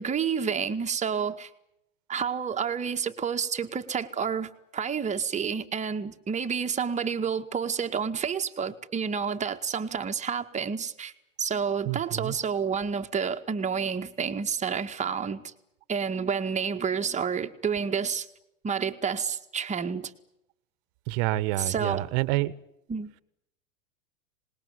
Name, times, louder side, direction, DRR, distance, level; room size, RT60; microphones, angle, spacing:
voice 1, 0.0-1.5 2.1-11.1 11.4-15.5 15.9-18.3 18.6-20.1 21.6-22.1 22.9-23.1, right 6 dB, 20° right, 1.9 m, -29 dB
voice 2, 11.9-12.4 21.1-22.5, right 17 dB, 50° right, 1.6 m, -28 dB
26.5 x 20.5 x 9.8 m
hypercardioid pair, 115°, 39 cm